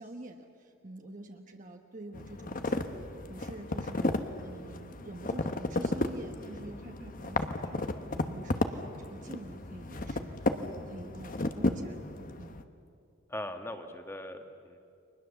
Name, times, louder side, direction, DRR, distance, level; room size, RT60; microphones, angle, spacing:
voice 1, 0.0-2.9 3.3-7.9 8.1-12.6, right 1 dB, 40° right, 3 dB, 1.2 m, -47 dB
sound 1, 2.1-12.6, left 2 dB, 40° left, 1.0 m, -34 dB
voice 2, 13.3-14.8, left 1 dB, 10° left, 6 dB, 1.5 m, -40 dB
30.0 x 23.5 x 7.1 m, 2.5 s
head